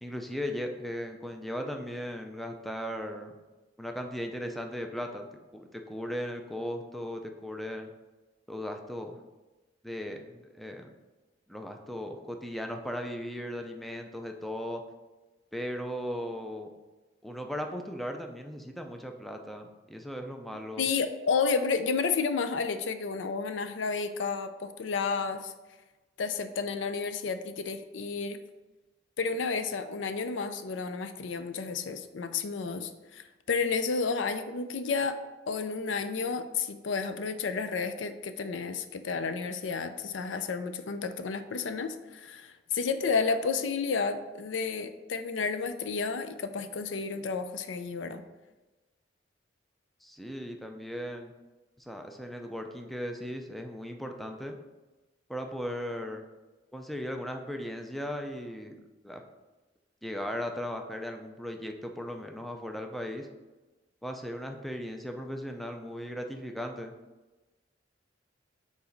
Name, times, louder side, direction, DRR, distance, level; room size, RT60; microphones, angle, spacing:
voice 1, 0.0-3.3 3.8-5.3 5.5-7.9 8.5-9.2 9.8-10.9 11.5-14.8 15.5-16.7 17.2-20.9 50.0-51.3 51.8-54.6 55.3-56.3 56.7-58.8 59.0-59.2 60.0-63.3 64.0-66.9, equal, ahead, 4 dB, 0.5 m, -37 dB
voice 2, 20.8-25.5 26.2-28.4 29.2-35.2 35.5-48.2, left 5 dB, 80° left, 10 dB, 0.5 m, -31 dB
4.9 x 4.1 x 5.2 m, 1.1 s
head